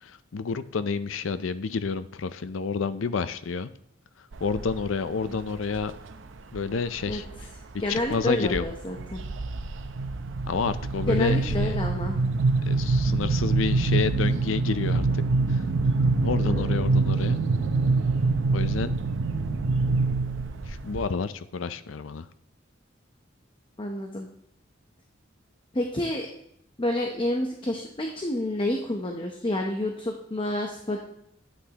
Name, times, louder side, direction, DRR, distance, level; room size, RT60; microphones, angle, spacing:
voice 1, 0.0-3.7 4.4-5.9 6.5-7.3 7.9-8.7 10.5-11.8 12.7-15.2 15.5-15.6 16.2-17.4 18.5-19.0 20.6-22.3, left 5 dB, 85° left, 13 dB, 0.5 m, -29 dB
sound 1, 4.3-4.9 5.3-5.9 6.6-7.4 7.8-8.2 8.5-21.1, right 3 dB, 75° right, 0.6 m, -25 dB
voice 2, 7.8-9.2 11.1-12.2 16.5-16.8 23.8-24.3 25.7-26.3 26.8-31.0, left 1 dB, 25° left, 2 dB, 0.8 m, -29 dB
11.5 x 8.6 x 2.9 m, 0.74 s
head